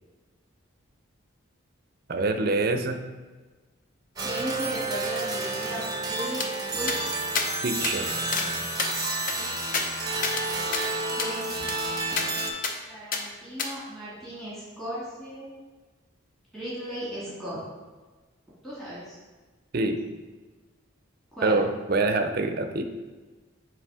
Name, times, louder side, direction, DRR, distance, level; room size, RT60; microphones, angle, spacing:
voice 1, 2.1-3.0 7.6-8.1 19.7-20.0 21.4-22.8, right 3 dB, 45° right, 7 dB, 0.5 m, -25 dB
voice 2, 4.2-5.8 6.1-6.4 6.7-6.9 7.9-8.0 8.3-8.6 9.4-9.8 11.1-11.5 11.8-12.5 12.9-15.5 16.5-17.6 18.6-19.2 21.3-21.5, equal, ahead, -11 dB, 1.8 m, -37 dB
sound 1, 4.2-12.5, right 2 dB, 20° right, 0.7 m, -30 dB
sound 2, 6.4-6.5 6.9-7.0 7.4-7.5 7.8-8.0 8.3-8.5 8.8-10.5 10.7-10.8 11.2-11.3 11.7-11.8 12.2-12.3 12.6-12.8 13.1-13.2 13.6-13.7, left 4 dB, 40° left, 0.6 m, -30 dB
7.4 x 3.1 x 4.8 m, 1.3 s
head